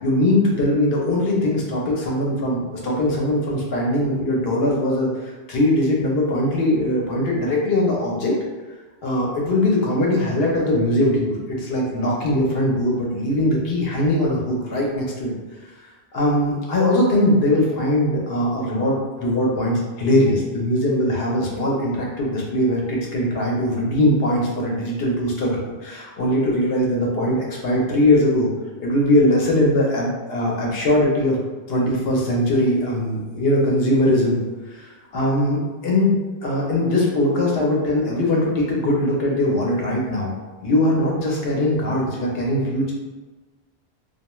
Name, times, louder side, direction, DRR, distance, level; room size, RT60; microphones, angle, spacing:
voice 1, 0.0-8.3 9.0-15.3 16.1-28.5 28.8-31.4 31.7-34.4 34.7-40.3 40.6-42.9, left 1 dB, 70° left, -2 dB, 0.9 m, -21 dB
2.4 x 2.2 x 3.0 m, 1.2 s
omnidirectional pair, 1.0 m